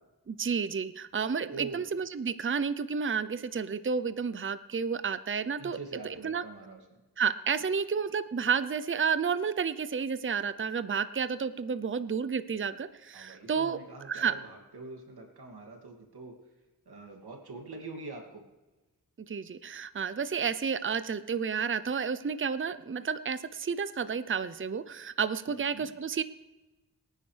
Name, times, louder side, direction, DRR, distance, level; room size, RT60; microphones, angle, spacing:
voice 1, 0.3-5.8 6.0-6.4 7.2-13.8 14.1-14.3 19.3-26.2, right 6 dB, 35° right, 13 dB, 0.6 m, -31 dB
voice 2, 1.5-1.8 5.6-6.8 13.1-16.3 16.9-18.5 25.5-25.9, right 3 dB, 85° right, 2 dB, 2.6 m, -44 dB
23.0 x 9.8 x 3.4 m, 1.1 s
cardioid pair, 50°, 37 cm